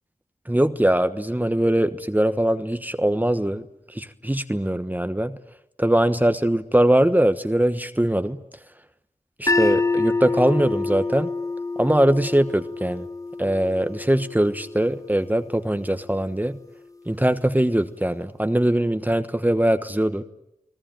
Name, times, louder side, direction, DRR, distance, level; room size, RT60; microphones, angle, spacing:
voice 1, 0.5-3.6 3.9-5.4 5.8-8.4 9.4-11.3 11.8-13.1 13.4-16.6 17.1-20.2, right 1 dB, 15° right, 9 dB, 1.2 m, -21 dB
sound 1, 9.5-15.6, left 3 dB, 25° left, 1.1 m, -27 dB
30.0 x 19.0 x 9.0 m, 0.84 s
cardioid pair, 40°, 13 cm